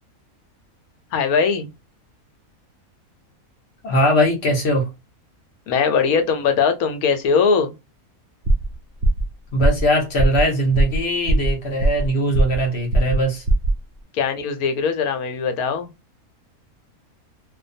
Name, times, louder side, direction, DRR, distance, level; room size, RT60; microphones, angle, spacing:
voice 1, 1.1-1.7 5.7-7.7 14.1-15.9, left 6 dB, 80° left, 1.1 m, -20 dB
voice 2, 3.8-4.9 9.5-13.4, equal, 50° left, 1.0 m, -20 dB
sound 1, 8.4-8.7 9.0-9.3 9.6-9.9 10.2-10.4 10.8-11.0 11.3-12.1 12.3-12.7 12.9-13.2 13.5-13.8, right 2 dB, 80° right, 0.5 m, -18 dB
2.5 x 2.2 x 2.5 m
omnidirectional pair, 1.5 m